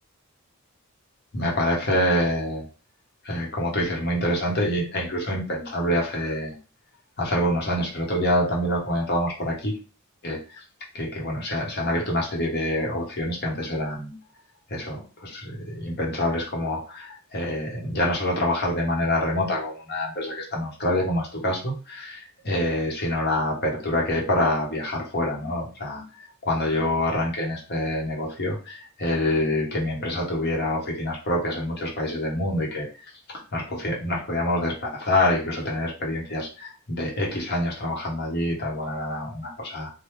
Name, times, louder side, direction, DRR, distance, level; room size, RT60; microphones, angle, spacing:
voice 1, 1.3-2.6 3.2-6.5 7.2-9.8 10.2-10.4 10.9-14.1 14.7-26.0 26.4-32.9 33.5-39.9, left 1 dB, 45° left, -2 dB, 1.0 m, -26 dB
3.1 x 2.2 x 3.3 m, 0.34 s
head